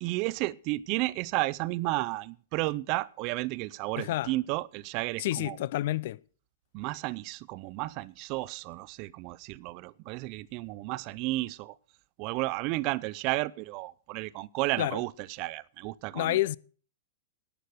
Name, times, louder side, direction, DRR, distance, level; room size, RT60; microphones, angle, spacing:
voice 1, 0.0-5.6 6.7-11.7 12.2-16.4, right 20 dB, 45° right, 0.6 m, -32 dB
voice 2, 4.0-4.3 5.2-6.2 14.8-15.0 16.1-16.6, left 15 dB, 60° left, 0.5 m, -29 dB
12.0 x 9.2 x 6.5 m
hypercardioid pair, 105°, 0 cm